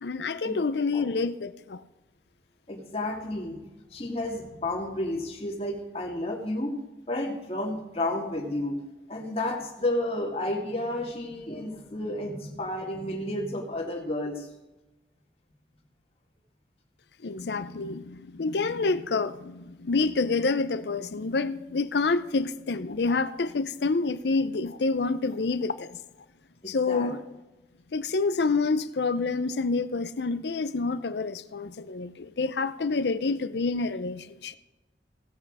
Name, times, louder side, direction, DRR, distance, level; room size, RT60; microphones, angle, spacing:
voice 1, 0.0-1.8 17.2-26.0 26.7-27.2 27.9-34.6, left 3 dB, 70° left, 0.6 m, -28 dB
voice 2, 2.7-3.7 3.9-6.7 7.1-8.8 9.1-14.5 26.6-27.1, left 1 dB, 35° left, 2.0 m, -31 dB
16.5 x 8.0 x 4.9 m
head